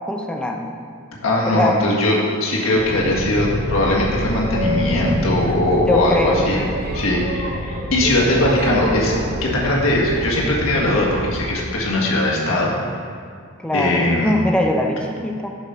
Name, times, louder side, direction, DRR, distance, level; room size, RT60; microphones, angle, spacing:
voice 1, 0.1-0.7 1.5-1.8 5.9-6.8 13.6-15.5, left 1 dB, 5° left, 2 dB, 0.6 m, -22 dB
voice 2, 1.2-6.6 6.9-9.2 9.4-12.7 13.7-14.3, left 1 dB, 80° left, -4 dB, 1.7 m, -20 dB
Boat Water vehicle, 2.7-11.5, right 1 dB, 50° right, 0.9 m, -27 dB
7.3 x 6.2 x 5.6 m, 2.1 s
head